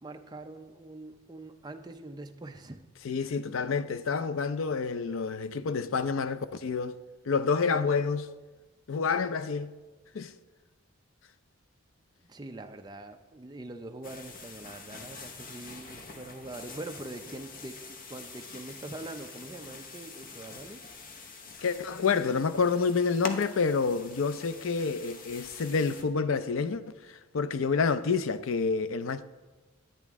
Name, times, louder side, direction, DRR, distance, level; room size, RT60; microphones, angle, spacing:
voice 1, 0.0-2.8 12.2-20.8, right 2 dB, 20° right, 0.5 m, -43 dB
voice 2, 3.0-7.0 7.2-8.3 8.9-9.7 10.1-10.3 21.6-29.2, left 5 dB, 70° left, 0.5 m, -28 dB
sound 1, 14.0-26.0, left 3 dB, 40° left, 0.8 m, -45 dB
10.5 x 9.2 x 3.6 m
head